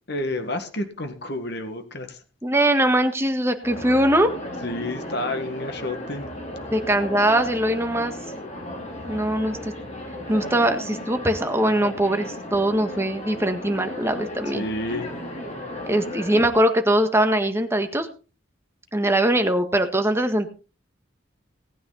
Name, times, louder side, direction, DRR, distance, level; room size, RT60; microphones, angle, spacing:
voice 1, 0.1-2.2 4.6-6.3 14.5-15.2, left 1 dB, 60° left, 6 dB, 1.8 m, -30 dB
voice 2, 2.4-4.3 6.7-8.1 9.1-9.7 10.3-14.7 15.9-18.1 18.9-20.5, right 1 dB, 15° right, 6 dB, 1.6 m, -21 dB
sound 1, 3.6-16.5, left 1 dB, 35° left, 3.5 m, -35 dB
18.5 x 9.4 x 4.1 m, 0.35 s
head